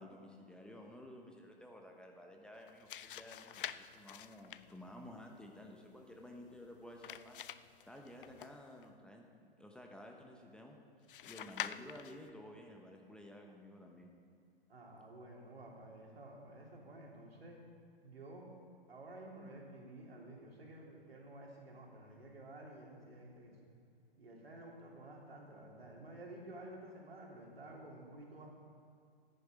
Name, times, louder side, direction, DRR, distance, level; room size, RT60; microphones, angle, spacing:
voice 1, 0.0-7.4 7.8-10.8 11.2-14.1, left 1 dB, 5° left, 1 dB, 1.1 m, -53 dB
sound 1, 2.6-8.9 11.1-12.3, left 10 dB, 60° left, 0.5 m, -48 dB
voice 2, 14.7-17.6 18.0-18.5 18.9-23.7 24.2-28.5, right 1 dB, 75° right, -1 dB, 3.1 m, -52 dB
14.5 x 9.9 x 5.0 m, 2.4 s
figure-of-eight pair, 115°, 30 cm